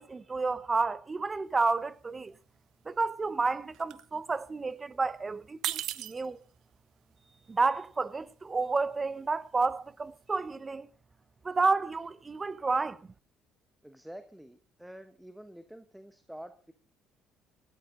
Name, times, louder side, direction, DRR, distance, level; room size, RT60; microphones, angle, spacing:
voice 1, 0.0-2.3 2.9-6.4 7.5-10.9 11.4-13.0, right 4 dB, 20° right, 0.9 m, -30 dB
sound 1, 1.5-1.7 1.9-2.6 2.9-5.1 5.5-10.5, right 13 dB, 70° right, 1.1 m, -40 dB
voice 2, 13.8-16.7, equal, ahead, 1.2 m, -48 dB
18.0 x 15.0 x 3.9 m
cardioid pair, 125°, 0 cm